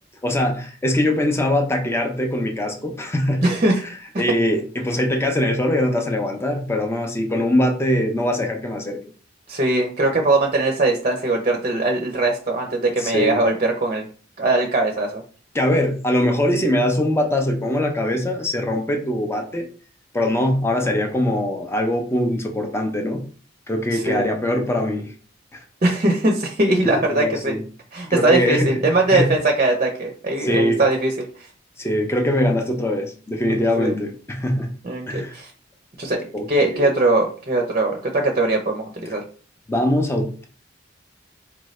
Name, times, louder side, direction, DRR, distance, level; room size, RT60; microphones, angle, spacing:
voice 1, 0.2-3.4 4.2-9.0 13.0-13.4 15.5-19.7 20.1-23.2 23.7-25.1 25.5-25.6 26.8-27.6 28.1-28.8 29.1-29.3 30.4-30.8 31.8-34.7 35.1-35.4 36.3-36.9 39.7-40.4, left 1 dB, 15° left, 4 dB, 0.6 m, -22 dB
voice 2, 3.4-3.8 9.5-14.1 14.4-15.2 23.9-24.2 25.8-27.5 27.9-31.3 33.6-33.9 34.8-35.5 36.0-36.2 36.5-39.2, right 2 dB, 35° right, 3 dB, 0.6 m, -20 dB
4.5 x 2.6 x 3.1 m, 0.41 s
head